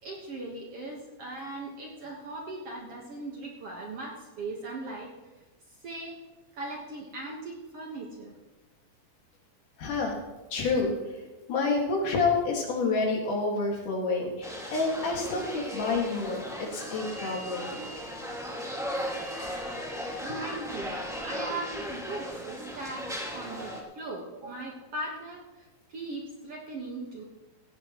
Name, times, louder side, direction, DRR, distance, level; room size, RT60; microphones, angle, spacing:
voice 1, 0.0-5.1 5.8-6.2 6.5-8.4 15.9-16.3 17.6-17.8 20.2-27.2, right 2 dB, 55° right, -1 dB, 1.9 m, -39 dB
voice 2, 9.8-10.2 10.5-10.9 11.5-17.8, left 3 dB, 65° left, 0 dB, 3.4 m, -28 dB
sound 1, 14.4-23.8, equal, 5° right, 0.4 m, -37 dB
17.0 x 15.5 x 3.1 m, 1.2 s
omnidirectional pair, 4.1 m